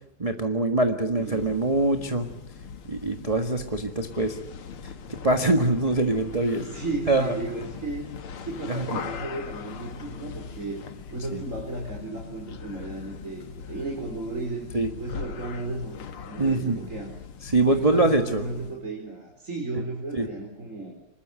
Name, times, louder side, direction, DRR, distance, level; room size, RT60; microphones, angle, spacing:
voice 1, 0.2-2.3 2.8-4.4 4.8-4.9 5.2-6.7 7.1-7.3 8.7-9.0 11.3-11.4 14.7-14.9 16.4-16.8 17.4-18.4 20.1-20.3, right 2 dB, 20° right, 5 dB, 1.5 m, -24 dB
sound 1, 1.1-18.8, left 6 dB, 80° left, 2.5 m, -40 dB
voice 2, 1.1-1.6 6.6-8.1 8.4-10.8 11.1-14.7 15.0-16.0 16.2-17.1 17.7-20.9, right 2 dB, 35° right, 0 dB, 4.7 m, -34 dB
26.0 x 21.0 x 9.0 m, 0.80 s
omnidirectional pair, 2.4 m